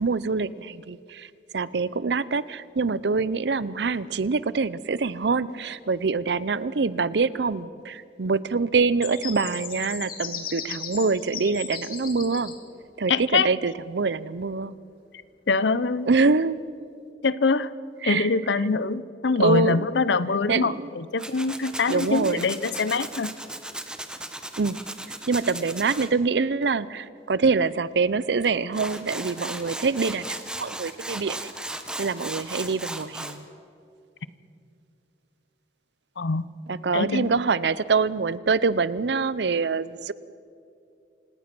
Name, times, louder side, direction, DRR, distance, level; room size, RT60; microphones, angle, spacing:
voice 1, 0.0-12.5 13.0-14.8 16.1-16.6 18.0-18.3 19.4-19.9 20.5-20.9 21.9-22.4 24.6-24.8 25.3-31.5 32.0-33.5 36.7-40.1, right 4 dB, 70° right, 18 dB, 0.6 m, -25 dB
sound 1, 9.0-12.5, left 7 dB, 55° left, 2.4 m, -36 dB
voice 2, 13.1-13.5 15.5-16.1 17.2-17.7 18.0-23.3 36.2-36.5 36.9-37.3, left 4 dB, 90° left, 16 dB, 0.7 m, -24 dB
Tools, 21.2-26.1 28.4-28.5 28.7-33.4, right 1 dB, 5° right, 1.2 m, -36 dB
27.5 x 18.0 x 6.1 m, 2.5 s
head